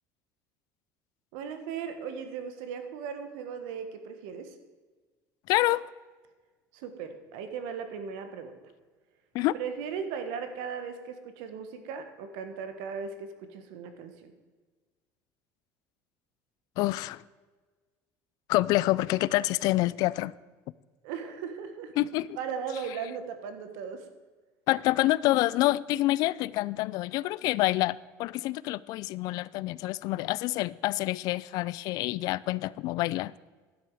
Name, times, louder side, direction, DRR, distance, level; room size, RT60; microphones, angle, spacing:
voice 1, 1.3-4.5 6.7-8.6 9.5-14.3 21.0-21.9 22.4-24.1, right 6 dB, 85° right, 1.4 m, -37 dB
voice 2, 5.5-5.8 9.3-9.6 16.8-17.2 18.5-20.3 22.0-22.3 24.7-33.3, left 17 dB, 60° left, 0.3 m, -27 dB
12.0 x 9.9 x 4.8 m
cardioid pair, 145°, 7 cm